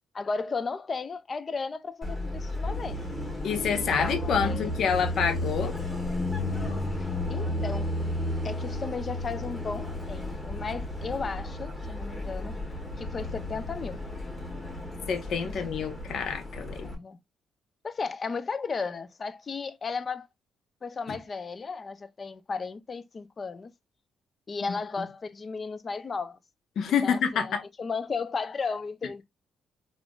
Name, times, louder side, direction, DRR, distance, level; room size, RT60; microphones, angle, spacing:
voice 1, 0.1-3.0 3.8-4.9 7.3-7.9 8.4-12.6 13.0-14.0 15.4-15.6 16.8-17.2 17.8-20.3 20.8-23.7 24.5-26.4 27.0-27.5 27.8-29.2, left 4 dB, 35° left, 0.4 m, -34 dB
Car passing by, 2.0-17.0, left 1 dB, 10° left, 1.3 m, -33 dB
voice 2, 3.4-5.7 15.1-16.9 21.1-21.2 24.7-24.8 26.8-27.6, left 7 dB, 65° left, 0.7 m, -27 dB
3.4 x 2.5 x 2.2 m
cardioid pair, 90°, 0 cm